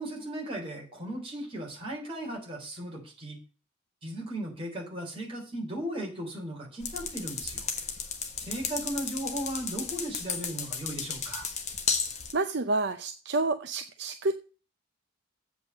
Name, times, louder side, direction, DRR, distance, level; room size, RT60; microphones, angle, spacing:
voice 1, 0.0-3.4 4.0-7.7 8.5-11.5, right 1 dB, 25° right, -1 dB, 3.6 m, -36 dB
sound 1, 6.8-12.3, left 6 dB, 35° left, 1.3 m, -34 dB
voice 2, 12.3-14.3, right 3 dB, 55° right, 7 dB, 0.6 m, -29 dB
8.1 x 5.5 x 7.4 m, 0.36 s
head